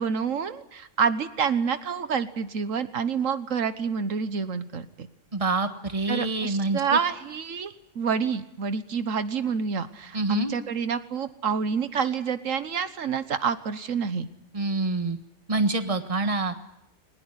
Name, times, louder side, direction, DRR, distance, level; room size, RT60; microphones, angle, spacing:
voice 1, 0.0-5.1 6.1-14.3, right 6 dB, 80° right, 12 dB, 1.5 m, -28 dB
voice 2, 5.3-7.0 10.1-10.5 14.5-15.2 15.5-16.5, right 3 dB, 25° right, 8 dB, 1.6 m, -26 dB
21.5 x 20.0 x 9.9 m, 0.82 s
omnidirectional pair, 1.3 m